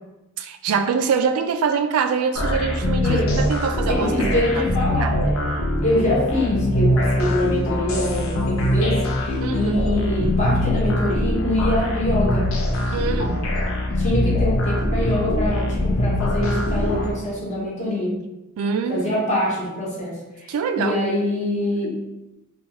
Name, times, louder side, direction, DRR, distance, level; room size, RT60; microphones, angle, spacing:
voice 1, 0.4-4.6 5.0-5.3 9.4-9.8 12.9-13.5 18.6-19.2 20.5-21.0, right 6 dB, 80° right, 8 dB, 0.3 m, -24 dB
sound 1, 2.4-17.1, left 1 dB, 70° left, 0.5 m, -22 dB
voice 2, 3.9-5.1 5.8-12.4 13.9-18.1 18.9-21.9, left 1 dB, 30° left, -5 dB, 0.8 m, -24 dB
2.8 x 2.3 x 2.9 m, 0.99 s
head